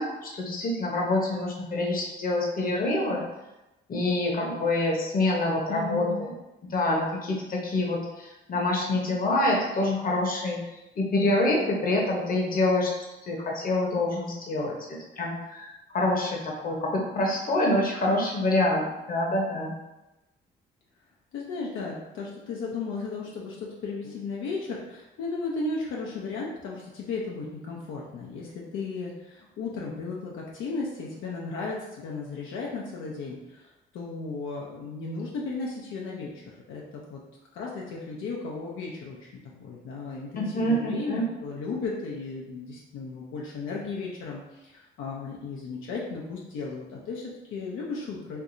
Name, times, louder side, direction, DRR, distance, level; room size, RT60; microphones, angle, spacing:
voice 1, 0.0-3.3 3.9-6.3 6.7-10.6 11.0-12.9 13.3-19.8 40.4-41.3, left 1 dB, 45° left, -1 dB, 0.9 m, -26 dB
voice 2, 5.7-6.2 21.3-36.3 36.7-37.2 37.5-48.4, left 4 dB, 80° left, -3 dB, 0.6 m, -35 dB
4.5 x 2.4 x 2.6 m, 0.98 s
cardioid pair, 90°, 20 cm